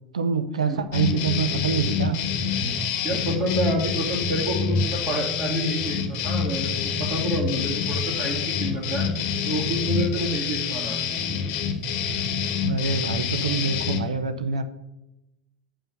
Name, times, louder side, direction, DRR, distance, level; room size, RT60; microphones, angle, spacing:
voice 1, 0.1-2.2 12.6-14.6, right 5 dB, 75° right, 10 dB, 0.6 m, -26 dB
sound 1, 0.9-14.1, left 6 dB, 45° left, 1.0 m, -27 dB
voice 2, 3.0-9.1 9.5-11.0, equal, 30° right, -1 dB, 2.3 m, -28 dB
5.5 x 5.5 x 6.7 m, 0.93 s
figure-of-eight pair, 80°, 4 cm